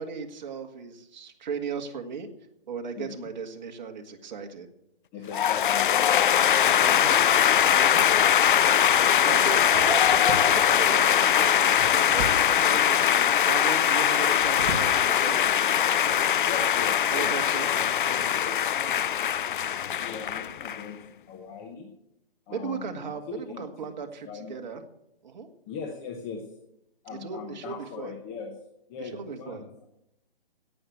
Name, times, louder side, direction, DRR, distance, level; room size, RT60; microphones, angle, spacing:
voice 1, 0.0-2.3 2.7-4.7 6.8-7.2 7.7-8.1 8.9-15.4 17.1-17.7 22.5-24.8 25.2-25.5 27.1-28.1 29.0-29.6, right 6 dB, 50° right, 4 dB, 1.9 m, -36 dB
voice 2, 3.0-3.3 5.1-7.1 16.5-17.3 17.6-19.0 19.9-21.0 21.3-21.9 22.5-23.7 24.3-24.6 25.7-26.5 27.0-28.6 28.9-29.7, left 5 dB, 10° left, 2 dB, 0.7 m, -40 dB
sound 1, 5.3-20.8, left 9 dB, 55° left, 0.5 m, -22 dB
sound 2, 8.7-8.9 9.9-10.9 11.7-12.6 14.2-15.0 15.6-15.7 16.2-16.4, right 3 dB, 30° right, 1.5 m, -36 dB
17.0 x 6.1 x 7.9 m, 0.82 s
hypercardioid pair, 160°, 30 cm